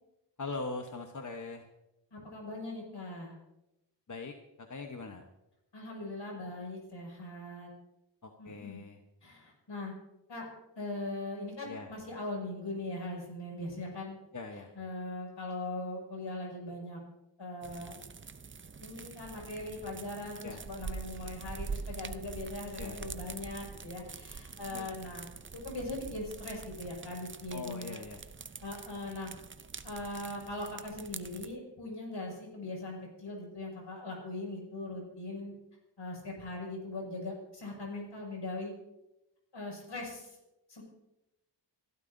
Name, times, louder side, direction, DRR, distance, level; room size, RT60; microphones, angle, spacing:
voice 1, 0.4-1.7 4.1-4.3 4.7-5.2 8.2-9.0 11.6-11.9 14.3-14.7 20.4-20.6 22.8-23.1 24.7-25.0 27.5-28.2, left 3 dB, 40° left, 4 dB, 1.1 m, -41 dB
voice 2, 2.1-3.4 5.7-7.7 8.4-8.8 9.2-9.9 10.3-10.5 10.8-14.2 14.8-17.0 17.4-18.0 18.8-25.3 25.6-28.0 28.6-29.3 29.8-35.5 36.0-38.7 39.5-40.3 40.7-40.8, left 2 dB, 70° left, -1 dB, 6.0 m, -40 dB
sound 1, 17.6-31.5, right 5 dB, 30° right, 0.5 m, -45 dB
27.5 x 12.5 x 2.7 m, 0.93 s
wide cardioid pair, 75°, 44 cm